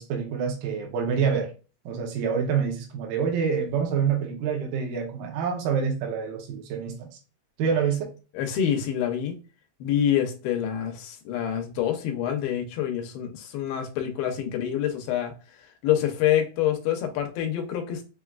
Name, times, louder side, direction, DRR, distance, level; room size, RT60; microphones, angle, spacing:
voice 1, 0.0-1.5 1.9-7.1 7.6-8.1, right 6 dB, 75° right, 1 dB, 2.2 m, -27 dB
voice 2, 8.4-9.4 9.8-15.3 15.8-18.1, left 10 dB, 85° left, 5 dB, 2.7 m, -26 dB
6.3 x 2.3 x 2.3 m, 0.34 s
omnidirectional pair, 4.3 m